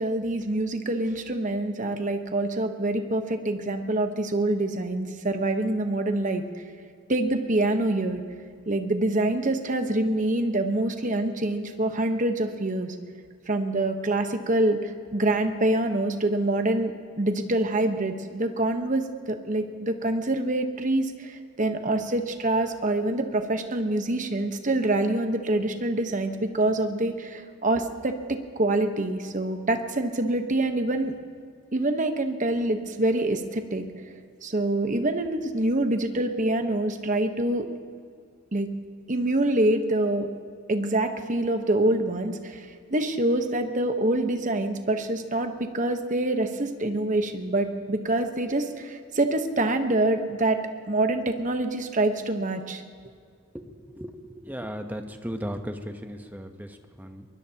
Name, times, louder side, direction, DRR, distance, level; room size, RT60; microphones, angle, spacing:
voice 1, 0.0-6.5 7.1-8.2 8.7-13.0 13.5-31.1 31.7-33.8 34.4-37.7 38.5-38.7 39.1-40.3 40.7-52.8, right 2 dB, 40° right, 6 dB, 1.1 m, -26 dB
voice 2, 53.5-57.3, equal, 10° right, 6 dB, 0.9 m, -36 dB
23.0 x 20.5 x 2.9 m, 2.1 s
head